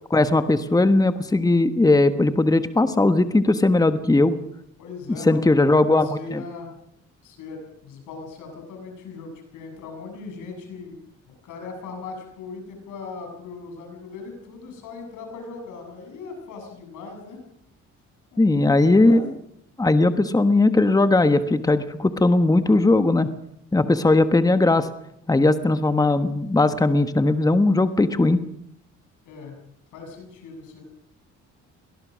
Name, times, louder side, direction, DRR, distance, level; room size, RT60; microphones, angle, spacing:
voice 1, 0.1-4.4 5.3-6.4 18.4-19.3 19.8-23.3 23.7-24.9 25.3-28.4, left 2 dB, 10° left, 10 dB, 1.2 m, -18 dB
voice 2, 4.8-5.6 5.9-6.7 7.2-11.0 11.4-17.4 18.3-19.2 29.2-29.6 29.9-30.8, left 4 dB, 90° left, 3 dB, 7.1 m, -39 dB
22.5 x 18.5 x 6.3 m, 0.75 s
cardioid pair, 90°, 30 cm